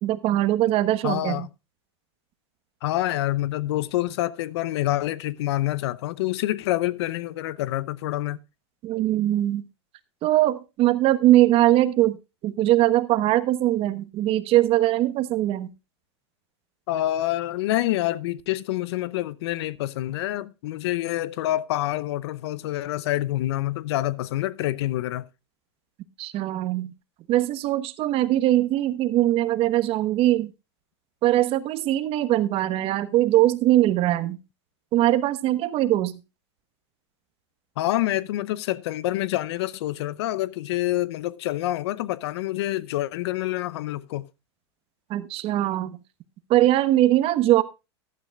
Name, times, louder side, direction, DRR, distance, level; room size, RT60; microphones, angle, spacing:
voice 1, 0.0-1.5 8.8-9.6 10.2-12.2 12.4-15.7 26.2-26.9 27.3-30.5 31.2-34.4 34.9-36.2 45.1-46.0 46.5-47.6, right 14 dB, 40° right, 1.2 m, -21 dB
voice 2, 1.0-1.5 2.8-8.4 16.9-25.2 37.8-44.3, left 15 dB, 65° left, 0.7 m, -27 dB
15.0 x 12.0 x 2.4 m
hypercardioid pair, 115°, 15 cm